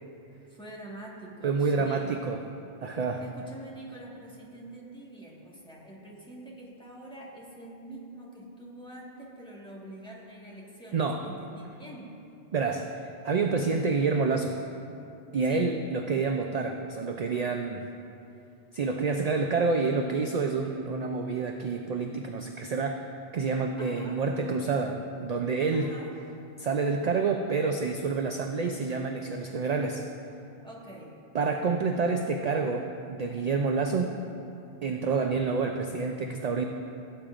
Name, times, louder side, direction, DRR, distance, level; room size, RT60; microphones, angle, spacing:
voice 1, 0.5-2.2 3.2-12.2 15.4-15.8 23.8-24.2 25.7-26.2 30.6-31.2, right 1 dB, 5° left, -5 dB, 1.5 m, -45 dB
voice 2, 1.4-2.4 2.8-3.2 10.9-11.2 12.5-12.9 13.2-14.6 15.3-17.9 18.7-23.1 23.3-25.9 26.6-30.0 31.3-34.1 34.8-36.7, right 4 dB, 50° right, 3 dB, 0.5 m, -28 dB
17.0 x 8.8 x 2.5 m, 2.7 s
omnidirectional pair, 1.2 m